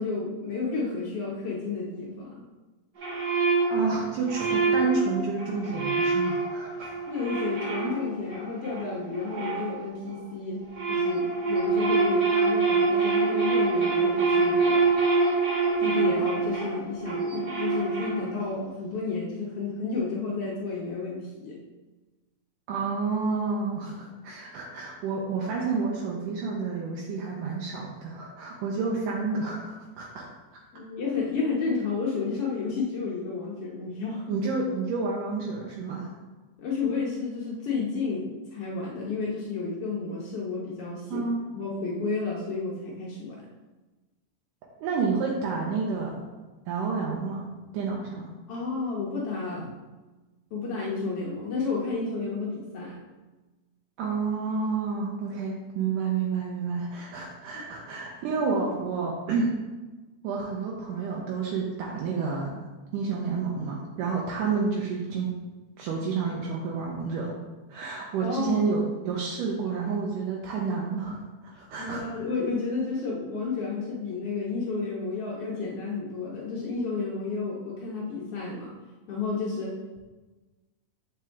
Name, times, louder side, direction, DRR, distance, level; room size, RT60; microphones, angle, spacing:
voice 1, 0.0-2.4 7.1-14.8 15.8-21.6 30.7-34.2 36.6-41.2 41.5-43.4 48.5-49.8 50.5-53.0 57.5-57.6 68.2-68.6 71.8-78.7 79.1-79.7, left 4 dB, 70° left, -4 dB, 1.4 m, -31 dB
sound 1, 3.0-10.2 10.6-18.5, right 4 dB, 55° right, 1.3 m, -26 dB
voice 2, 3.7-7.1 22.7-30.3 34.3-36.1 41.1-41.5 44.8-46.3 46.7-47.5 47.7-48.3 54.0-59.7 60.2-62.7 62.9-65.4 65.8-67.3 67.7-71.2 71.6-72.0, right 4 dB, 80° right, -2 dB, 2.3 m, -30 dB
7.6 x 4.9 x 3.5 m, 1.2 s
omnidirectional pair, 3.8 m